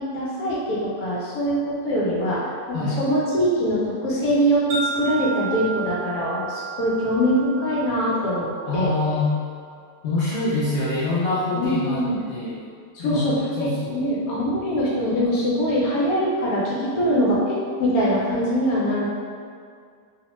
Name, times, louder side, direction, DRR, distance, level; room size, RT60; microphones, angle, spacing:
voice 1, 0.0-2.4 2.7-8.9 11.5-12.2 12.9-19.1, equal, 70° left, -6 dB, 1.0 m, -23 dB
Wind chime, 4.7-9.0, right 3 dB, 70° right, 1.0 m, -33 dB
voice 2, 8.7-9.3 10.0-12.6 13.0-13.2 13.6-13.9, left 2 dB, 90° left, -10 dB, 0.5 m, -25 dB
2.8 x 2.1 x 2.9 m, 2.1 s
omnidirectional pair, 1.7 m